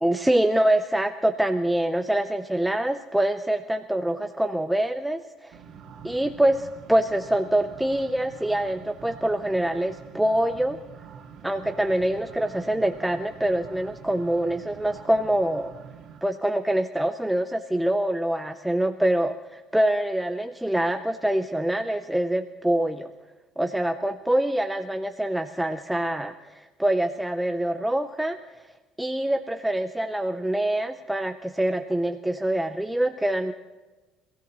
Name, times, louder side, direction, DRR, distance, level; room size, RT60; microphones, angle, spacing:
voice 1, 0.0-5.6 6.0-10.8 11.4-15.7 16.2-23.1 23.6-28.4 29.0-33.5, right 1 dB, 5° right, 6 dB, 0.6 m, -25 dB
sound 1, 5.5-16.2, right 7 dB, 55° right, 2.0 m, -46 dB
26.5 x 16.5 x 3.1 m, 1.2 s
cardioid pair, 130°, 0 cm